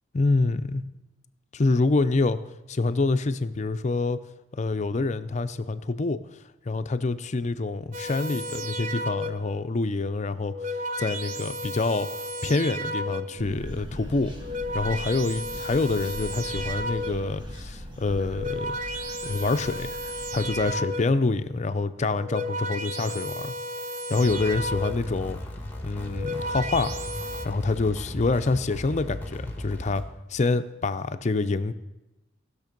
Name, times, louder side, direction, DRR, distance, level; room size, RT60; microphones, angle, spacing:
voice 1, 0.1-0.8 1.5-2.4 2.7-4.2 4.5-6.2 6.7-12.1 12.4-14.3 14.7-18.8 19.2-19.9 20.3-23.5 24.1-25.4 25.8-26.9 27.4-30.0 30.3-31.7, left 3 dB, 35° left, 11 dB, 0.5 m, -26 dB
sound 1, 7.9-9.6 10.3-13.5 14.2-17.4 18.1-21.3 22.0-25.2 26.0-27.5, equal, 45° right, 0.7 m, -33 dB
sound 2, 13.4-20.7, equal, 25° right, 1.4 m, -40 dB
sound 3, 24.3-30.0, left 1 dB, 10° left, 1.4 m, -36 dB
18.5 x 6.6 x 5.2 m, 1.0 s
head